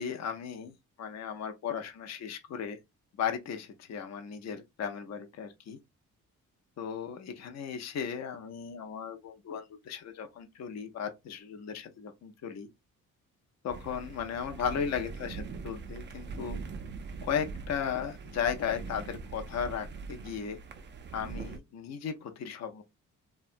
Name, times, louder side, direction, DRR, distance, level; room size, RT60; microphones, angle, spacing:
voice 1, 0.0-2.8 3.2-5.8 6.8-12.7 13.6-16.6 17.2-20.6 21.1-22.8, left 7 dB, 55° left, 0.5 m, -36 dB
sound 1, 13.7-21.6, right 4 dB, 35° right, 0.4 m, -42 dB
2.8 x 2.2 x 2.4 m
cardioid pair, 120°, 33 cm